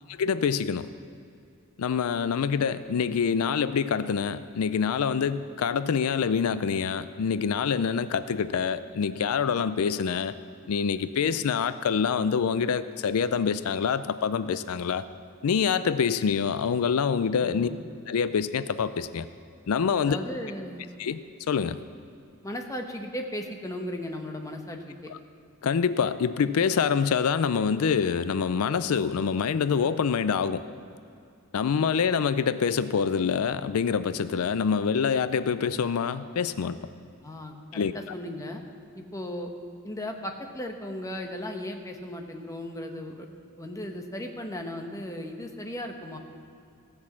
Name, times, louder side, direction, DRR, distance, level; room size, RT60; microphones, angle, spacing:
voice 1, 0.1-0.9 1.8-10.3 10.7-15.0 15.4-17.7 18.1-19.3 19.7-20.2 21.0-21.2 21.5-21.8 25.6-30.6 31.5-36.8 37.7-37.9, left 6 dB, 90° left, 13 dB, 0.4 m, -26 dB
voice 2, 17.4-17.8 20.0-20.8 22.4-25.1 37.2-38.6 39.0-39.5 39.8-43.3 43.6-46.2, left 1 dB, 15° left, 3 dB, 1.0 m, -36 dB
16.0 x 6.3 x 7.2 m, 2.5 s
head